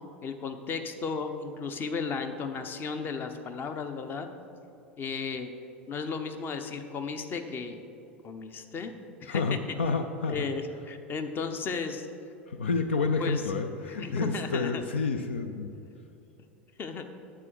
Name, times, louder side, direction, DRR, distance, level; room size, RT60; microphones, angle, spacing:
voice 1, 0.2-4.3 5.0-5.5 5.9-7.8 8.2-8.9 9.2-9.4 10.3-12.1 13.2-13.4 13.9-14.8 16.8-17.0, left 5 dB, 35° left, 7 dB, 0.8 m, -34 dB
voice 2, 9.3-10.5 12.5-15.7, left 4 dB, 75° left, 8 dB, 0.5 m, -29 dB
9.7 x 7.6 x 4.6 m, 2.8 s
figure-of-eight pair, 80°, 6 cm